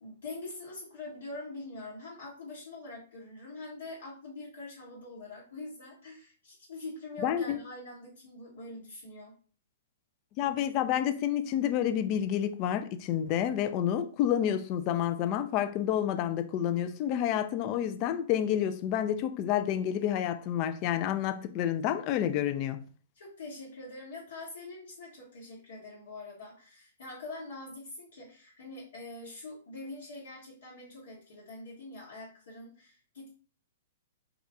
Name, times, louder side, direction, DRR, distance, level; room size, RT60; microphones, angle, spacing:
voice 1, 0.0-9.3 23.2-33.3, left 2 dB, 65° left, 1.0 m, -44 dB
voice 2, 7.2-7.6 10.4-22.8, left 10 dB, 35° left, 0.3 m, -29 dB
3.0 x 2.4 x 3.3 m
figure-of-eight pair, 115°, 0 cm